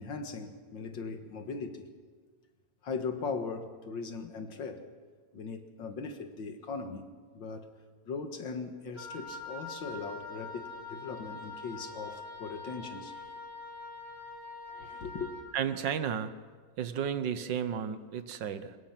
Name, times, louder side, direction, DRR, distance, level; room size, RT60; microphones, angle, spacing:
voice 1, 0.0-1.9 2.8-4.9 5.3-7.1 7.3-7.7 8.1-13.2 14.7-15.3, left 4 dB, 85° left, 2.3 m, -39 dB
Wind instrument woodwind instrument, 9.0-15.5, left 3 dB, 35° right, 2.7 m, -44 dB
voice 2, 15.5-16.3 16.8-18.8, right 8 dB, 75° right, 1.7 m, -33 dB
23.5 x 21.5 x 6.0 m
omnidirectional pair, 2.0 m